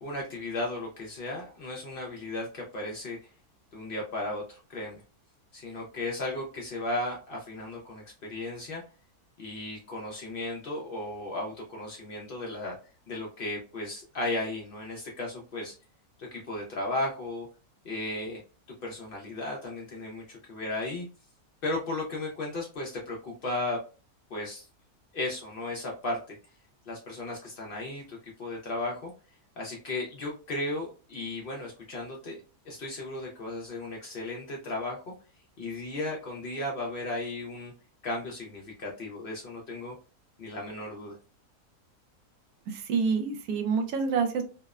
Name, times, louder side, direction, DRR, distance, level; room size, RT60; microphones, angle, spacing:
voice 1, 0.0-3.2 3.7-5.0 5.5-8.0 8.3-8.8 9.4-12.7 13.1-15.7 16.3-17.5 17.8-18.4 18.8-21.1 21.6-23.8 24.3-24.6 25.1-26.4 26.9-29.1 29.6-32.4 32.7-35.1 35.6-37.7 38.0-40.0 40.4-41.1, left 2 dB, 85° left, -2 dB, 0.5 m, -35 dB
voice 2, 42.7-44.4, right 5 dB, 75° right, 6 dB, 1.0 m, -27 dB
2.7 x 2.0 x 2.3 m, 0.35 s
omnidirectional pair, 1.7 m